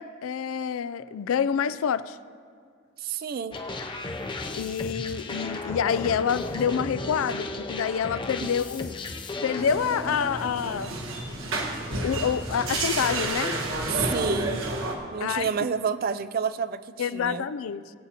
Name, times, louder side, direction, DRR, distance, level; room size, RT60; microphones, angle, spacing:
voice 1, 0.0-2.2 4.6-9.0 9.4-10.9 12.0-13.6 15.2-15.5 17.0-17.9, left 7 dB, 80° left, 0.4 m, -27 dB
voice 2, 3.0-3.6 8.4-8.5 14.0-14.7 15.1-16.8 17.1-17.4, right 6 dB, 45° right, 0.3 m, -29 dB
sound 1, 3.5-9.6, left 2 dB, 25° left, 0.6 m, -34 dB
sound 2, 9.6-15.0, right 2 dB, 80° right, 1.4 m, -30 dB
21.5 x 8.3 x 2.9 m
head